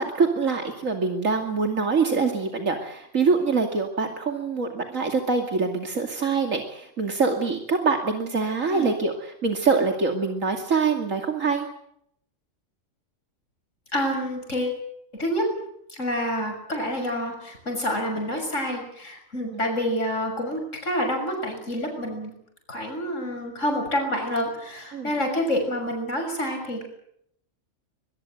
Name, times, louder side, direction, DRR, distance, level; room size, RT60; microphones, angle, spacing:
voice 1, 0.0-11.7 19.4-19.6 24.9-25.1, right 4 dB, 80° right, 4 dB, 2.9 m, -24 dB
voice 2, 13.9-14.8 15.1-15.5 15.9-22.3 22.7-26.9, equal, 70° left, 3 dB, 6.8 m, -28 dB
24.0 x 21.5 x 8.0 m, 0.71 s
omnidirectional pair, 1.3 m